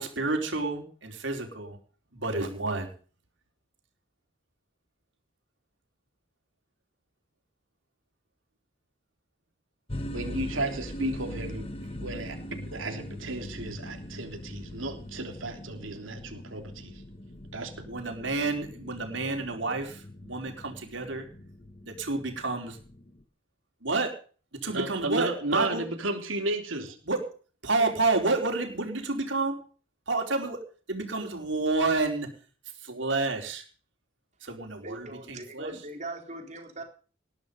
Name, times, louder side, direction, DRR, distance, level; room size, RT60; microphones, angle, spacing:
voice 1, 0.0-1.8 2.1-2.9 17.8-21.3 21.8-22.8 23.8-24.1 24.6-25.8 27.0-27.2 27.6-29.6 30.1-30.6 30.9-32.3 32.8-33.6 34.4-35.7, right 3 dB, 70° right, 3 dB, 4.5 m, -29 dB
sound 1, 9.9-23.2, equal, 30° left, 1.5 m, -41 dB
voice 2, 10.1-11.7 12.0-12.4 12.7-17.0 17.5-17.7 24.7-27.0, right 2 dB, 90° right, 4 dB, 3.5 m, -33 dB
voice 3, 34.8-36.8, right 2 dB, 35° right, 3 dB, 4.0 m, -40 dB
19.5 x 11.0 x 5.4 m, 0.40 s
head